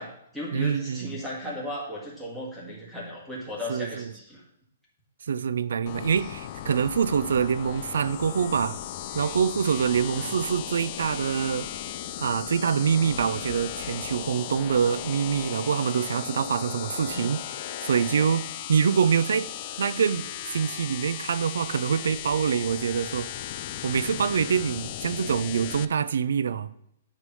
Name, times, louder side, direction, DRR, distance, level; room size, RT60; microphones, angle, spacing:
voice 1, 0.0-4.4 10.1-10.3 17.1-17.3 24.0-24.1, left 1 dB, ahead, 1.6 m, -36 dB
voice 2, 0.5-1.1 3.7-4.1 5.3-8.8 9.1-11.7 12.2-17.4 17.8-19.5 19.8-23.3 23.8-26.7, right 7 dB, 75° right, 0.4 m, -25 dB
sound 1, 5.9-25.9, left 11 dB, 30° left, 0.3 m, -36 dB
9.7 x 3.3 x 5.4 m
hypercardioid pair, 175°, 0 cm